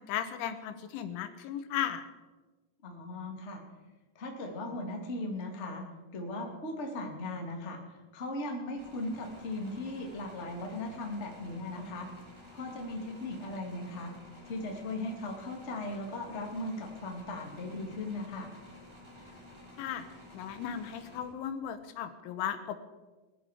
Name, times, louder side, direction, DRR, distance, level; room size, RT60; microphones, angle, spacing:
voice 1, 0.0-2.1 19.8-20.1 20.3-22.8, left 9 dB, 90° left, 10 dB, 3.5 m, -36 dB
voice 2, 2.8-3.6 4.1-5.8 6.1-12.1 12.5-14.1 14.4-18.5, left 2 dB, 35° left, 1 dB, 1.1 m, -38 dB
sound 1, 8.7-21.7, left 1 dB, 30° right, 0.5 m, -52 dB
20.0 x 12.0 x 5.0 m, 1.2 s
omnidirectional pair, 5.3 m